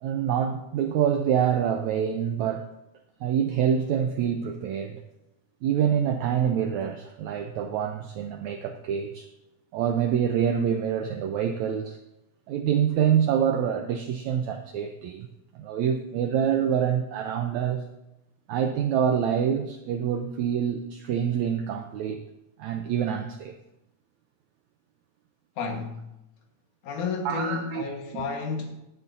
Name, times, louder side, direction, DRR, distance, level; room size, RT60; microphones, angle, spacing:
voice 1, 0.0-2.7 3.2-5.0 5.6-9.3 9.7-12.0 12.5-15.3 15.5-17.8 18.5-22.2 22.6-23.5 27.2-27.8 28.1-28.3, right 8 dB, 90° right, 1.6 m, -26 dB
voice 2, 25.6-26.0 26.8-28.8, left 5 dB, 65° left, 2.7 m, -31 dB
16.0 x 11.0 x 2.7 m
omnidirectional pair, 4.1 m